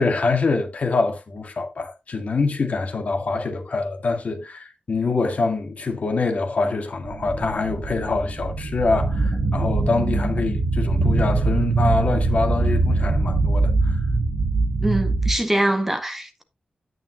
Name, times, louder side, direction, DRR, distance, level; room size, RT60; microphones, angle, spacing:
voice 1, 0.0-13.7, left 3 dB, 60° left, 1.9 m, -25 dB
sound 1, 7.0-15.3, right 3 dB, 55° right, 1.3 m, -22 dB
voice 2, 14.8-16.4, right 1 dB, 10° right, 1.6 m, -23 dB
9.5 x 9.1 x 2.9 m
wide cardioid pair, 120°, 3 cm